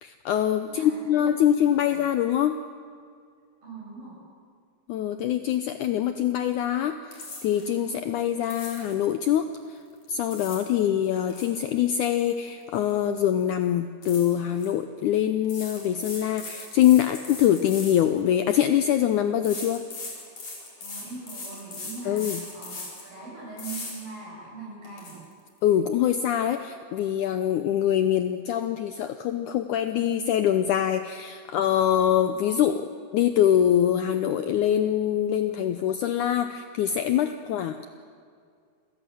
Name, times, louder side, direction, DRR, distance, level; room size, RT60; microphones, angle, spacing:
voice 1, 0.0-2.6 4.9-9.8 10.1-19.8 22.1-22.4 25.6-37.7, left 10 dB, 80° left, 8 dB, 1.8 m, -24 dB
voice 2, 0.6-2.0 3.6-4.2 10.7-11.0 20.8-25.2 31.9-32.2 37.4-37.6, right 4 dB, 65° right, -5 dB, 9.8 m, -42 dB
sound 1, 7.1-7.7 8.4-9.0 10.0-10.7 11.0-12.9 13.2-13.4 14.0-14.7 15.4-18.6 19.4-23.1 23.6-23.9 24.4-24.5 24.8-25.1, left 3 dB, 45° left, 5.9 m, -39 dB
27.5 x 16.5 x 7.8 m, 2.2 s
omnidirectional pair, 4.3 m